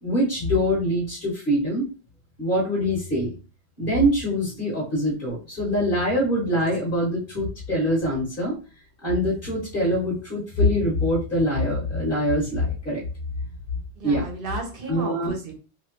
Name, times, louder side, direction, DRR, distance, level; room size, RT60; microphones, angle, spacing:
voice 1, 0.0-1.8 2.4-3.3 3.8-8.6 9.0-13.0 14.0-14.3 14.9-15.3, equal, 45° left, -4 dB, 1.4 m, -24 dB
voice 2, 14.0-15.6, right 3 dB, 50° right, 2 dB, 1.1 m, -34 dB
3.1 x 2.8 x 3.0 m, 0.35 s
omnidirectional pair, 1.2 m